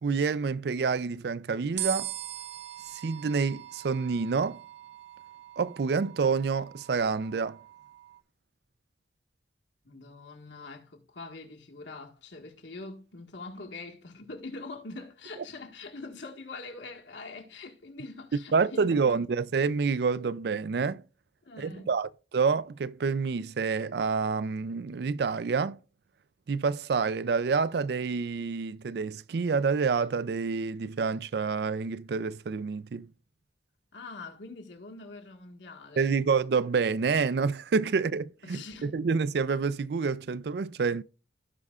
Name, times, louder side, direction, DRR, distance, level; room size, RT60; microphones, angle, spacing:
voice 1, 0.0-2.1 2.9-4.6 5.6-7.6 18.5-21.0 21.6-25.8 26.5-33.1 36.0-41.0, right 5 dB, 60° right, 0.4 m, -28 dB
sound 1, 1.8-8.2, right 14 dB, 80° right, 0.8 m, -41 dB
voice 2, 9.8-19.0 21.4-21.9 33.9-36.2 38.4-38.9, left 3 dB, 80° left, 1.6 m, -44 dB
16.0 x 5.4 x 2.4 m
head